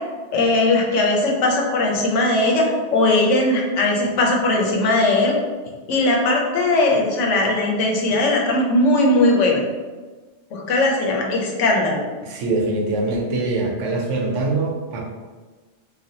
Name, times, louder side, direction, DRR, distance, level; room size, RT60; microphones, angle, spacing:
voice 1, 0.3-5.3 5.9-9.6 10.5-12.0, left 2 dB, 85° left, 0 dB, 1.0 m, -19 dB
voice 2, 12.2-15.0, right 2 dB, 85° right, 0 dB, 1.0 m, -23 dB
3.2 x 2.4 x 2.7 m, 1.3 s
omnidirectional pair, 1.2 m